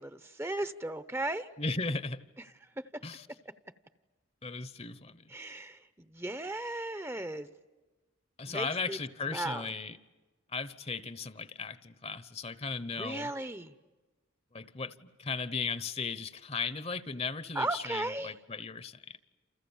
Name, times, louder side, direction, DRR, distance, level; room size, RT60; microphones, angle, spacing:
voice 1, 0.0-1.5 5.3-7.5 8.4-9.0 9.3-9.7 13.0-13.7 17.5-18.3, right 2 dB, 15° right, 0.8 m, -36 dB
voice 2, 1.6-2.2 3.0-3.3 4.4-5.2 8.4-10.0 10.5-13.3 14.5-19.2, left 4 dB, 30° left, 0.9 m, -36 dB
29.0 x 28.5 x 7.2 m
head